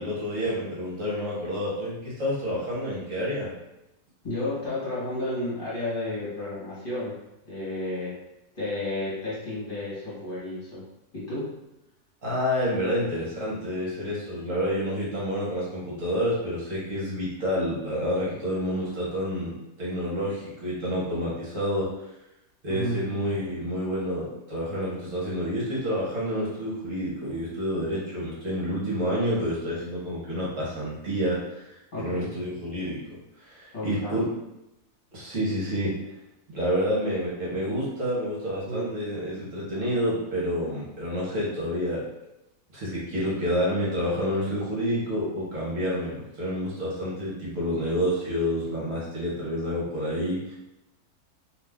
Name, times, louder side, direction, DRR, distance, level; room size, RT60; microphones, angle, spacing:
voice 1, 0.0-3.5 12.2-21.9 22.6-33.0 33.4-34.3 35.1-35.9 36.5-42.0 42.7-50.5, equal, 60° right, -7 dB, 1.3 m, -29 dB
voice 2, 4.2-7.1 7.5-8.2 8.5-10.8 11.1-11.5 22.7-23.0 31.9-32.3 33.7-34.1 38.7-38.8, left 1 dB, 35° left, -10 dB, 1.2 m, -32 dB
2.7 x 2.5 x 3.4 m, 0.89 s
omnidirectional pair, 1.6 m